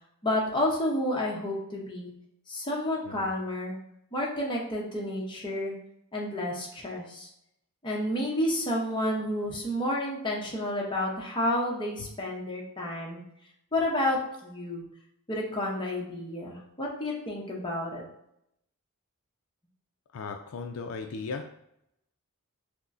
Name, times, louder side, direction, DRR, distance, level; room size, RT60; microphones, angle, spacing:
voice 1, 0.2-2.1 2.5-3.8 4.1-5.7 6.1-7.3 7.8-13.2 13.7-14.8 15.3-18.0, left 1 dB, 20° left, -3 dB, 0.8 m, -30 dB
voice 2, 20.1-21.5, left 4 dB, 70° left, 5 dB, 0.4 m, -37 dB
5.9 x 2.1 x 2.6 m, 0.77 s
head